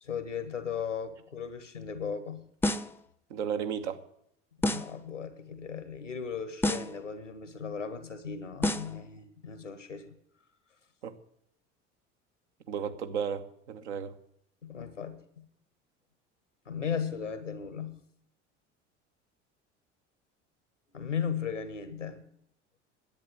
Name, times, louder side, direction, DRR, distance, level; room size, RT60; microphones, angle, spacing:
voice 1, 0.0-2.5 4.6-10.2 14.6-15.5 16.7-18.0 20.9-22.2, left 7 dB, 90° left, 11 dB, 1.3 m, -36 dB
sound 1, 2.6-3.0 4.6-5.0 6.6-7.0 8.6-9.0, left 1 dB, 5° left, 0.6 m, -29 dB
voice 2, 3.3-4.0 11.0-11.2 12.7-14.1, right 7 dB, 70° right, 7 dB, 1.3 m, -34 dB
10.5 x 8.9 x 8.7 m, 0.73 s
figure-of-eight pair, 65°, 36 cm